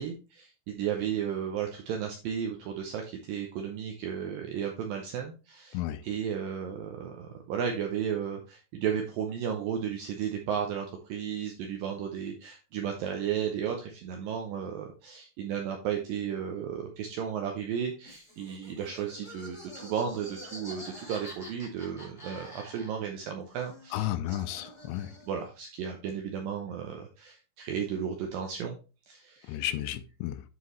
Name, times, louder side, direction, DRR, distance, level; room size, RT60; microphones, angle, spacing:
voice 1, 0.0-24.1 25.3-28.8 29.1-29.6, right 8 dB, 80° right, 2.0 m, -34 dB
voice 2, 5.7-6.0 23.9-25.1 29.5-30.4, left 13 dB, 85° left, 2.6 m, -33 dB
Laughter, 18.0-23.2 23.5-25.4, equal, 15° left, 1.2 m, -47 dB
9.7 x 4.6 x 3.1 m
omnidirectional pair, 5.0 m